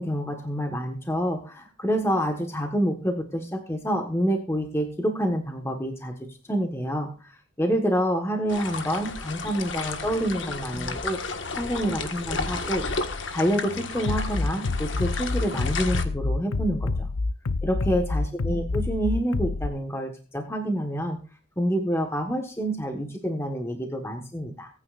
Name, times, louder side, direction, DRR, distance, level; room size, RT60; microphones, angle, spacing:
voice 1, 0.0-6.1 6.5-11.2 11.6-13.1 13.3-17.1 17.6-21.2 21.6-24.7, equal, 10° left, 3 dB, 1.4 m, -27 dB
sound 1, 8.5-16.0, left 4 dB, 60° left, 1.6 m, -33 dB
Bass drum, 14.1-19.7, left 3 dB, 90° left, 0.7 m, -27 dB
23.5 x 9.7 x 2.5 m, 0.37 s
head